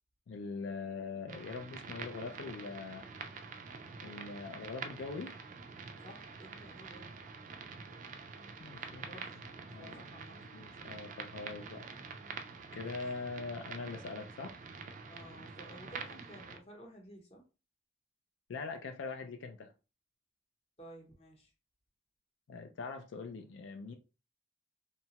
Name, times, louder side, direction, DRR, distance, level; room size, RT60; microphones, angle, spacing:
voice 1, 0.3-3.1 4.0-5.3 8.6-9.1 9.7-10.0 10.5-11.9 12.7-14.6 18.5-19.7 22.5-24.0, left 4 dB, 75° left, 0.4 m, -42 dB
sound 1, 1.3-16.6, right 5 dB, 40° right, 0.3 m, -47 dB
voice 2, 6.0-7.1 9.0-9.4 9.8-10.4 12.7-13.0 15.1-17.4 20.8-21.5, equal, 30° left, 0.7 m, -53 dB
2.8 x 2.2 x 2.8 m
head